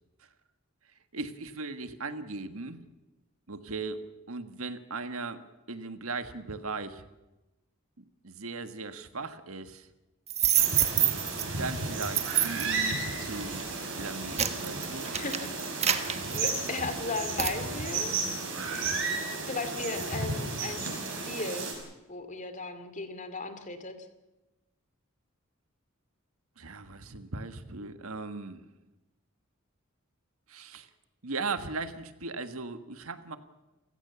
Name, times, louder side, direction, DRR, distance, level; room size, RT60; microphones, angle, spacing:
voice 1, 1.1-2.8 3.5-4.0 4.3-7.0 8.0-9.9 11.4-13.7 14.0-15.1 26.6-28.7 30.5-30.9 31.2-33.4, right 3 dB, 80° right, 9 dB, 1.6 m, -38 dB
sound 1, 10.3-11.4 12.0-12.8 13.4-13.6 14.1-16.9 17.4-17.6, right 9 dB, 30° right, 1.3 m, -27 dB
sound 2, 10.5-21.7, right 3 dB, 60° right, 6.4 m, -33 dB
voice 2, 15.1-15.9 16.3-18.1 19.5-21.0 21.3-21.7 22.1-24.1, left 3 dB, 35° left, 9 dB, 2.5 m, -36 dB
29.0 x 16.5 x 7.1 m, 1.0 s
head